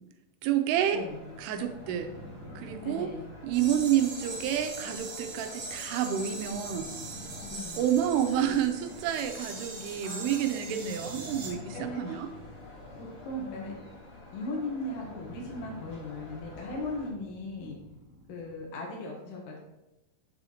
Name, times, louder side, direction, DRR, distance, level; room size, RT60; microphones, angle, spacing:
voice 1, 0.4-1.0 1.4-2.1 2.6-3.1 3.4-6.9 7.8-12.3, right 10 dB, 85° right, 7 dB, 2.7 m, -29 dB
sound 1, 0.8-17.1, left 2 dB, 50° left, 3.4 m, -49 dB
voice 2, 0.9-1.3 2.8-3.2 7.4-7.8 10.0-10.4 11.7-12.0 13.0-13.7 14.3-17.8 18.3-19.6, left 2 dB, 65° left, -2 dB, 2.5 m, -38 dB
sound 2, 1.5-18.7, left 1 dB, 50° right, 2.7 m, -50 dB
sound 3, 3.5-11.5, right 3 dB, 70° right, 2.8 m, -41 dB
7.2 x 7.0 x 2.9 m, 0.94 s
omnidirectional pair, 4.6 m